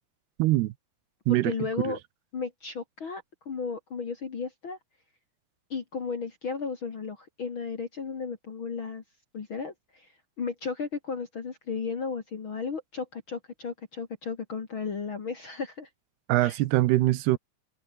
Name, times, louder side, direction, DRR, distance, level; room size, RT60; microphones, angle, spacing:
voice 1, 0.4-0.7 1.3-1.5 1.9-2.0 16.3-17.4, right 17 dB, 75° right, 2.7 m, -23 dB
voice 2, 1.3-2.0 2.3-4.8 5.7-9.0 9.3-10.1 10.4-15.9 16.4-16.6, left 5 dB, 45° left, 1.7 m, -34 dB
omnidirectional pair, 5.1 m